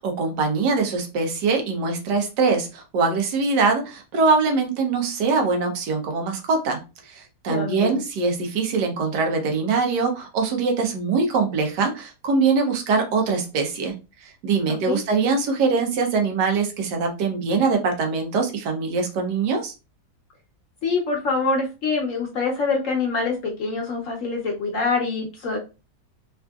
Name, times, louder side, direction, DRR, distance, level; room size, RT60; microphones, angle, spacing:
voice 1, 0.0-19.7, right 4 dB, 80° right, 3 dB, 1.4 m, -23 dB
voice 2, 7.5-8.0 14.9-15.0 20.8-25.6, left 4 dB, 60° left, 1 dB, 0.9 m, -25 dB
3.5 x 2.5 x 2.3 m, 0.29 s
omnidirectional pair, 1.8 m